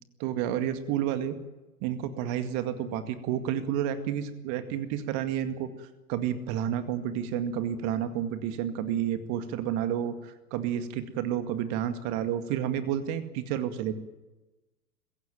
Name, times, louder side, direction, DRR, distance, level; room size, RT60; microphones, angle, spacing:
voice 1, 0.2-1.4 1.8-13.9, right 10 dB, 35° right, 10 dB, 2.1 m, -30 dB
23.0 x 16.0 x 9.1 m, 1.1 s
figure-of-eight pair, 110°, 46 cm